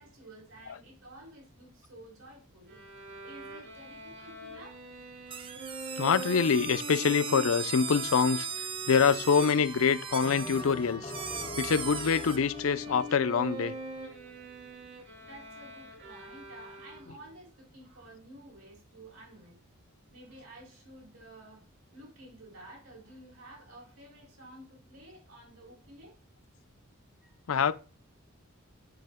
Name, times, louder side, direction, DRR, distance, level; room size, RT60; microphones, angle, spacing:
voice 1, 0.0-2.8 3.2-4.8 15.2-19.6 20.1-21.6 21.9-26.1 27.2-27.3, right 1 dB, 75° right, 3.9 m, -52 dB
Bowed string instrument, 2.7-17.3, right 1 dB, 60° right, 2.6 m, -43 dB
sound 1, 5.3-12.4, right 7 dB, 25° right, 0.5 m, -38 dB
voice 2, 6.0-11.1 11.6-13.7 27.5-27.7, left 6 dB, 70° left, 0.5 m, -25 dB
Bell, 10.2-14.8, left 2 dB, 25° left, 0.6 m, -45 dB
7.8 x 5.7 x 3.6 m
head